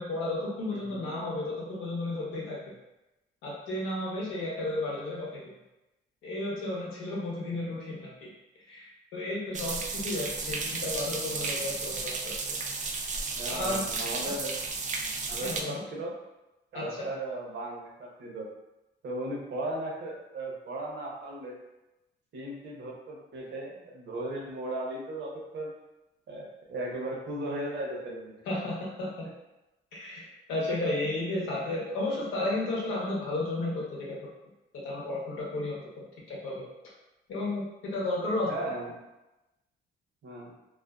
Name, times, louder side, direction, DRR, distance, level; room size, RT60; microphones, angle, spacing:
voice 1, 0.0-2.6 3.4-5.5 6.2-8.3 8.7-8.9 9.1-12.3 13.5-14.3 15.4-15.8 16.7-17.1 28.5-29.3 29.9-30.2 30.5-34.3 34.8-36.6 37.3-38.7, left 2 dB, 85° left, -4 dB, 0.8 m, -33 dB
sound 1, 9.5-15.6, right 4 dB, 40° right, 0.4 m, -33 dB
voice 2, 13.3-14.6 15.3-16.1 16.7-18.5 19.0-21.6 22.3-25.7 26.3-28.4 38.5-38.9 40.2-40.5, right 1 dB, 65° right, -2 dB, 0.7 m, -36 dB
2.4 x 2.3 x 2.3 m, 0.97 s
cardioid pair, 90°, 20 cm